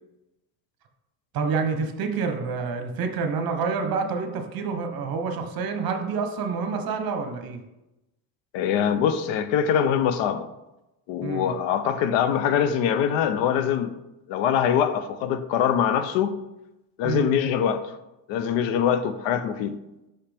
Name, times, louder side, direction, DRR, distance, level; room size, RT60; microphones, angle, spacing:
voice 1, 1.3-7.6 11.2-11.5 17.0-17.3, right 5 dB, 55° right, 1.0 m, -28 dB
voice 2, 8.5-10.5 11.1-13.9 14.3-16.4 17.0-18.0 18.3-19.8, left 8 dB, 90° left, 0.7 m, -23 dB
5.7 x 5.7 x 3.4 m
cardioid pair, 130°, 43 cm